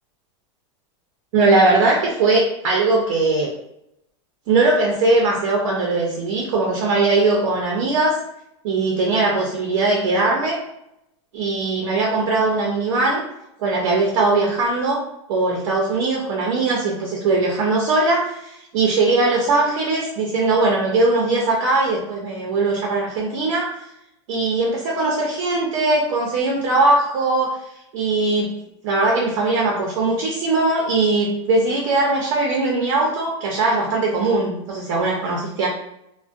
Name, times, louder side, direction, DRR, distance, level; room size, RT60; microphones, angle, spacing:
voice 1, 1.3-3.5 4.5-8.2 8.6-10.6 11.3-13.2 13.6-15.0 15.3-23.8 24.3-27.6 27.9-28.5 28.8-35.7, right 3 dB, 65° right, -1 dB, 0.6 m, -20 dB
2.4 x 2.1 x 2.4 m, 0.82 s
supercardioid pair, 140°, 16 cm